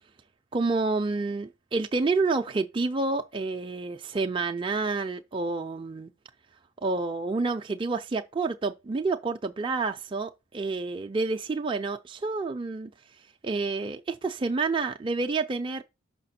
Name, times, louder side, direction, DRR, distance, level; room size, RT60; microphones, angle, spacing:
voice 1, 0.5-6.1 6.8-12.9 13.4-15.8, right 3 dB, 25° right, 0.4 m, -29 dB
5.8 x 5.8 x 4.2 m
head